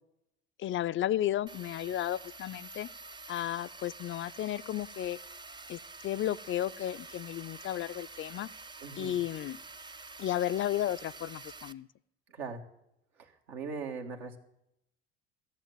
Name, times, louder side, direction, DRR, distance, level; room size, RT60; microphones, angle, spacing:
voice 1, 0.6-2.9 3.3-5.2 5.7-8.5 9.0-9.6 10.2-11.9, left 12 dB, 40° left, 22 dB, 0.5 m, -33 dB
sound 1, 1.5-11.7, right 3 dB, 15° right, 0.6 m, -48 dB
voice 2, 8.8-9.2 12.3-12.6 13.2-14.4, right 5 dB, 80° right, 2 dB, 1.9 m, -40 dB
14.0 x 7.2 x 9.3 m, 0.82 s
hypercardioid pair, 65°, 32 cm